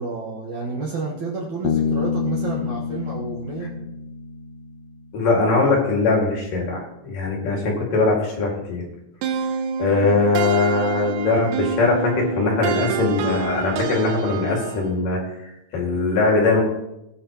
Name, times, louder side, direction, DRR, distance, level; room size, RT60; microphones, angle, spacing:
voice 1, 0.0-3.8, right 3 dB, 55° right, -3 dB, 2.2 m, -30 dB
Bass guitar, 1.7-5.2, left 6 dB, 85° left, 2.8 m, -27 dB
voice 2, 5.1-8.9 9.8-16.6, left 3 dB, 55° left, -1 dB, 3.6 m, -21 dB
sound 1, 9.2-15.0, right 7 dB, 80° right, 3.1 m, -27 dB
19.0 x 9.6 x 3.0 m, 0.88 s
omnidirectional pair, 5.0 m